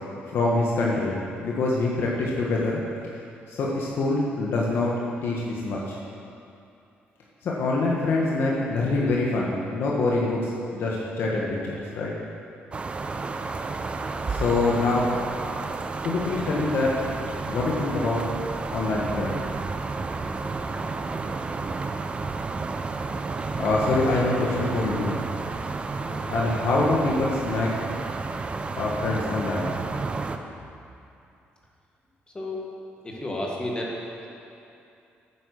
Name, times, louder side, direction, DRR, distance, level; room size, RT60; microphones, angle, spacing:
voice 1, 0.3-2.8 3.5-4.9 5.2-6.0 7.4-12.1 14.3-15.1 16.0-17.0 17.5-18.2 18.7-19.4 23.6-25.2 26.3-27.7 28.8-29.7, left 2 dB, 70° left, -4 dB, 1.4 m, -25 dB
sound 1, 12.7-30.4, right 3 dB, 30° right, 0.6 m, -31 dB
voice 2, 28.3-28.8 32.3-32.6 33.0-34.3, left 1 dB, 20° left, -2 dB, 1.8 m, -33 dB
9.0 x 8.5 x 6.4 m, 2.6 s
cardioid pair, 115°, 4 cm